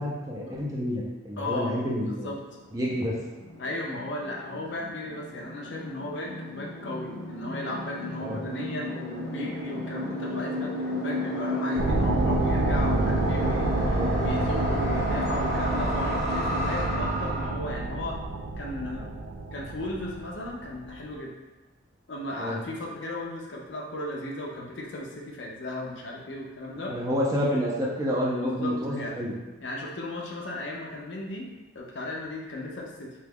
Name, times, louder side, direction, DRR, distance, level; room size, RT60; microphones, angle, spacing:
voice 1, 0.0-2.3 2.7-3.2 8.2-8.4 13.9-14.1 22.4-22.6 26.9-29.4, equal, 15° right, -5 dB, 0.5 m, -29 dB
voice 2, 1.4-2.4 3.6-18.2 18.6-19.1 19.5-21.3 22.1-27.0 28.4-29.2 29.6-33.1, left 1 dB, 60° left, -1 dB, 0.5 m, -36 dB
sound 1, 2.2-17.5, left 1 dB, 15° left, 0.8 m, -32 dB
sound 2, 11.8-20.9, right 2 dB, 70° right, 0.4 m, -28 dB
2.9 x 2.3 x 3.5 m, 1.2 s
head